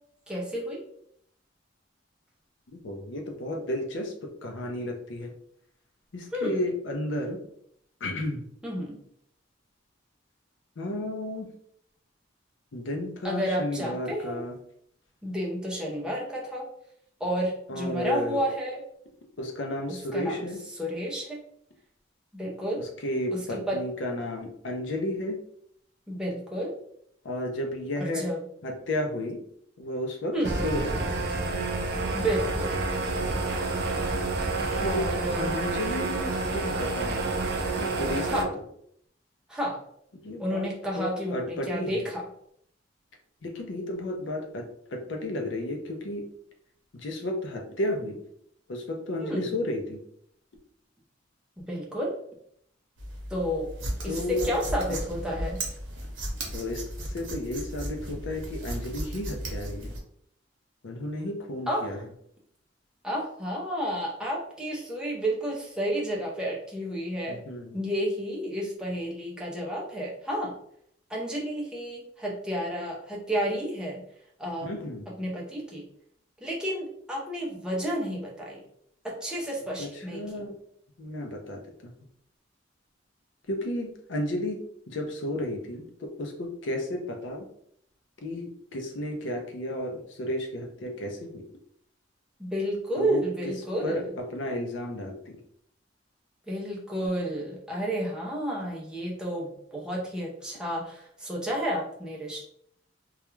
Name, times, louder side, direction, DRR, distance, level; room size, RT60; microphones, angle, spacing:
voice 1, 0.3-0.8 6.3-6.6 8.6-9.0 13.2-14.4 15.2-16.7 17.2-18.8 19.9-20.5 20.8-21.4 22.3-22.9 23.3-23.8 26.1-26.7 28.0-28.4 30.3-30.6 32.1-32.8 34.9-35.6 38.3-38.5 39.5-39.8 40.4-42.2 49.2-49.5 51.6-52.1 53.3-53.7 54.0-55.7 61.7-61.9 63.0-67.4 67.7-70.5 71.1-74.0 74.4-74.8 75.2-75.8 76.4-78.6 79.0-80.4 92.4-94.1 96.5-102.4, equal, 5° right, -4 dB, 0.5 m, -31 dB
voice 2, 2.7-5.3 6.1-7.4 8.0-8.4 10.8-11.5 12.7-14.6 17.7-18.4 19.4-20.6 22.8-25.4 27.2-28.2 28.6-29.4 29.8-30.3 30.6-31.3 34.7-35.1 35.4-37.3 37.8-38.5 40.2-40.7 41.0-42.0 43.4-46.3 46.9-48.2 48.7-50.0 54.1-54.5 54.9-55.0 56.5-59.9 60.8-62.0 67.3-67.8 74.6-75.1 79.8-80.5 81.0-81.9 83.5-87.5 88.2-91.4 93.0-93.2 93.8-95.4, left 1 dB, 70° left, 3 dB, 0.5 m, -33 dB
sound 1, 30.4-38.4, right 3 dB, 55° right, 0.4 m, -29 dB
sound 2, 53.0-60.0, right 1 dB, 85° right, 0.7 m, -35 dB
2.3 x 2.2 x 3.0 m, 0.69 s
head